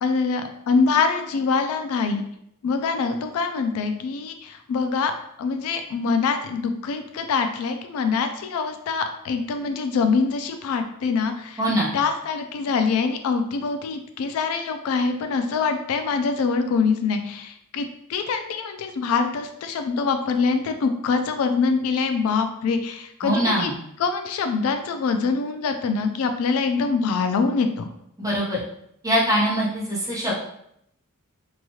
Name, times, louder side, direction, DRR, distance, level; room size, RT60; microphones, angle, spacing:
voice 1, 0.0-2.2 2.6-5.1 5.4-11.6 11.9-23.7 24.0-27.9, left 5 dB, 70° left, 8 dB, 0.3 m, -24 dB
voice 2, 11.6-11.9 23.2-23.7 28.2-28.6 29.0-30.3, equal, 15° right, -5 dB, 0.7 m, -22 dB
2.9 x 2.3 x 2.8 m, 0.74 s
head